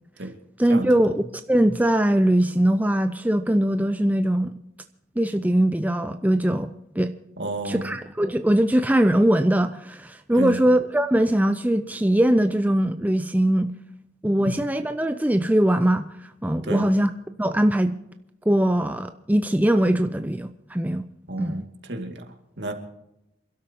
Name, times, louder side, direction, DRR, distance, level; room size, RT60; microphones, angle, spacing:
voice 1, 0.6-4.5 5.2-7.1 7.6-13.7 14.2-16.1 16.4-17.1 17.4-17.9 18.5-21.1 21.4-21.6, right 1 dB, 10° right, 0.5 m, -21 dB
voice 2, 7.4-8.0 10.3-10.7 14.4-14.5 16.6-16.9 21.3-22.7, right 1 dB, 70° right, 2.2 m, -31 dB
28.0 x 12.5 x 2.9 m
head